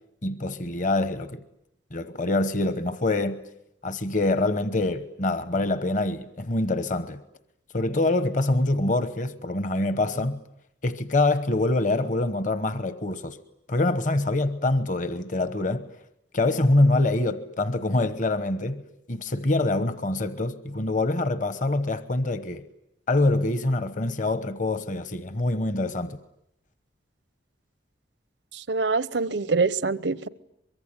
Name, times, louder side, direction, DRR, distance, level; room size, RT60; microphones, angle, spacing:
voice 1, 0.2-1.4 1.9-3.4 3.8-7.2 7.7-10.4 10.8-13.4 13.7-15.9 16.3-18.8 19.1-22.6 23.1-26.2, left 2 dB, 40° left, 1.1 m, -25 dB
voice 2, 28.5-30.3, right 4 dB, 65° right, 1.0 m, -25 dB
24.0 x 23.5 x 9.9 m
head